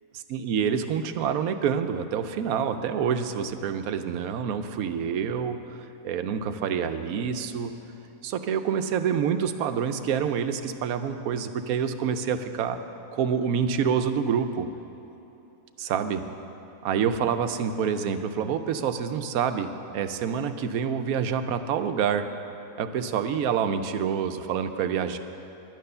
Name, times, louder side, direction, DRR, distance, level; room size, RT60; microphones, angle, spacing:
voice 1, 0.3-5.8 6.0-7.7 8.2-12.8 13.1-14.7 15.8-16.2 16.8-22.3 22.8-25.2, right 7 dB, 85° right, 9 dB, 1.1 m, -27 dB
11.0 x 9.2 x 6.7 m, 3.0 s
omnidirectional pair, 1.5 m